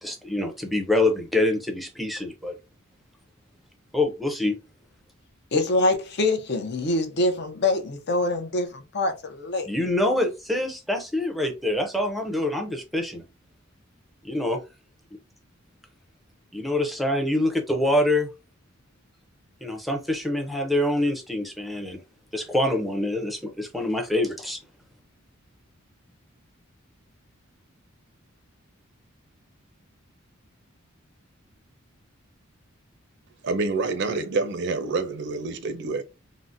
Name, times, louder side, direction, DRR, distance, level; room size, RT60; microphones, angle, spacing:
voice 1, 0.0-2.5 3.9-4.6 9.7-13.2 14.2-14.6 16.5-18.3 19.6-22.0 22.3-24.6, left 1 dB, ahead, 0.5 m, -25 dB
voice 2, 5.5-9.7, left 2 dB, 50° left, 0.6 m, -25 dB
voice 3, 33.4-36.0, right 3 dB, 55° right, 0.5 m, -27 dB
3.8 x 2.1 x 2.5 m
head